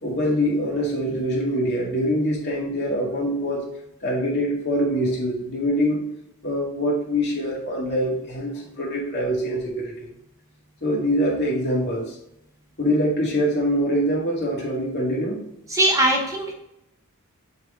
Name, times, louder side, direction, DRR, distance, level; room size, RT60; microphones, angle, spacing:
voice 1, 0.0-3.6 4.0-6.0 6.4-10.1 10.8-12.1 12.8-15.4, equal, 50° left, -3 dB, 2.1 m, -24 dB
voice 2, 15.7-16.5, right 1 dB, 15° right, 0 dB, 0.9 m, -20 dB
7.4 x 4.1 x 3.7 m, 0.81 s
head